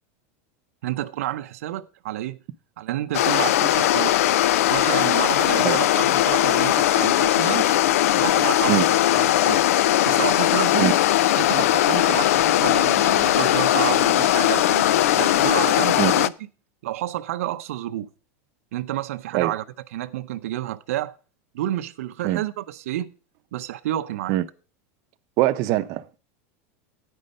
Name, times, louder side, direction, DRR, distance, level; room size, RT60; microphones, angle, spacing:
voice 1, 0.8-2.4 2.8-4.2 4.7-7.7 8.1-9.6 10.1-11.0 11.3-14.9 15.2-16.3 16.8-18.1 18.7-19.6 19.9-21.2 21.5-23.1 23.5-24.4, right 14 dB, 85° right, 0.6 m, -29 dB
sound 1, 3.1-16.3, left 13 dB, 85° left, 0.4 m, -19 dB
voice 2, 25.4-26.2, right 15 dB, 45° right, 0.6 m, -22 dB
9.6 x 5.5 x 6.4 m
supercardioid pair, 145°, 8 cm